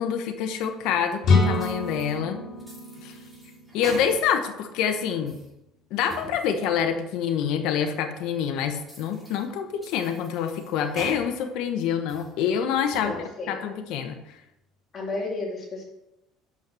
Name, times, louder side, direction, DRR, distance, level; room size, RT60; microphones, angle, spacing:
voice 1, 0.0-2.4 3.0-3.2 3.7-5.4 5.9-13.1 13.5-14.4, left 8 dB, 65° left, 6 dB, 1.0 m, -26 dB
sound 1, 1.2-5.0, left 3 dB, 50° left, 3.4 m, -26 dB
sound 2, 1.5-2.2 2.6-4.5 4.9-5.5 5.9-6.4 6.8-6.9 7.5-7.6 8.2-8.3 8.7-9.5 9.8-11.2 11.7-12.3 12.8-13.2, right 1 dB, 10° right, 2.5 m, -42 dB
voice 2, 12.9-13.6 14.9-15.8, left 2 dB, 30° left, -3 dB, 2.5 m, -32 dB
6.6 x 5.8 x 6.1 m, 0.90 s
cardioid pair, 155°, 0 cm